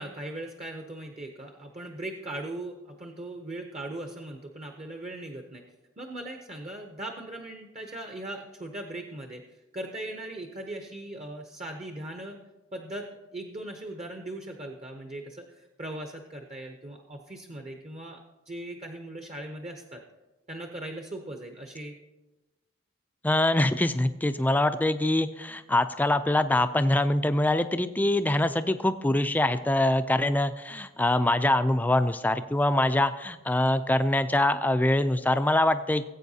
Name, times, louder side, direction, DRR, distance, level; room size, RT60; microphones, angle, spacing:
voice 1, 0.0-5.6 6.0-9.4 9.7-12.4 12.7-18.2 18.5-20.0 20.5-22.0, right 1 dB, 30° right, 4 dB, 0.7 m, -39 dB
voice 2, 23.2-36.1, left 1 dB, 10° left, 11 dB, 0.3 m, -24 dB
18.0 x 8.3 x 2.8 m, 1.1 s
head